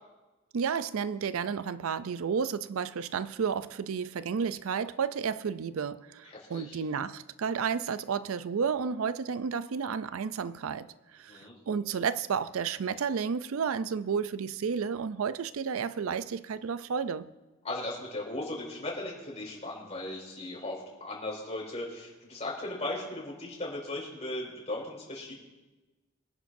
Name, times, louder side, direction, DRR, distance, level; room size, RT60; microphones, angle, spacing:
voice 1, 0.5-17.3, right 6 dB, 80° right, 0.4 m, -32 dB
voice 2, 6.2-6.8 11.3-11.5 17.6-25.4, left 2 dB, 30° left, 4.9 m, -37 dB
25.0 x 11.5 x 2.6 m
head